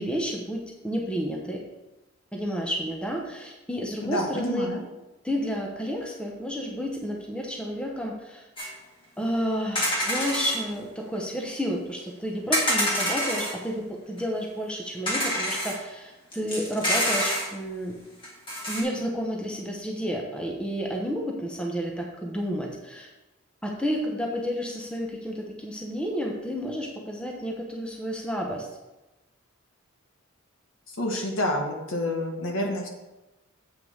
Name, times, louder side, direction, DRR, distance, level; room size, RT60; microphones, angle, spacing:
voice 1, 0.0-1.6 2.3-4.7 5.2-8.5 9.2-18.0 18.7-23.1 23.6-28.7 31.1-31.2, equal, 5° left, 0 dB, 0.9 m, -31 dB
voice 2, 4.0-4.8 30.9-32.9, left 1 dB, 70° left, 1 dB, 1.6 m, -28 dB
sound 1, 8.6-8.7 9.7-10.6 12.5-13.6 14.2-14.3 15.1-15.8 16.3-17.5 18.2-18.8, equal, 25° left, 2.0 m, -26 dB
8.0 x 5.4 x 5.5 m, 1.0 s
head